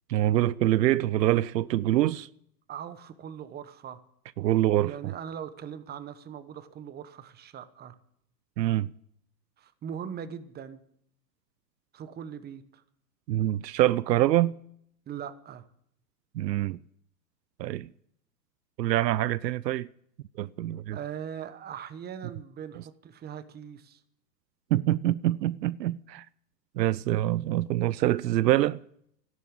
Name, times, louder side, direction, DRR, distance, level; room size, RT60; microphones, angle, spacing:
voice 1, 0.1-2.3 4.4-5.1 8.6-8.9 13.3-14.6 16.3-16.8 17.6-17.9 18.8-19.9 20.4-21.0 24.7-26.3 26.8-28.8, right 14 dB, 75° right, 0.6 m, -25 dB
voice 2, 2.7-4.0 4.8-7.9 9.6-10.8 11.9-12.8 15.1-15.6 20.9-24.0, right 8 dB, 20° right, 1.1 m, -40 dB
12.5 x 11.0 x 8.6 m
hypercardioid pair, 125°, 50 cm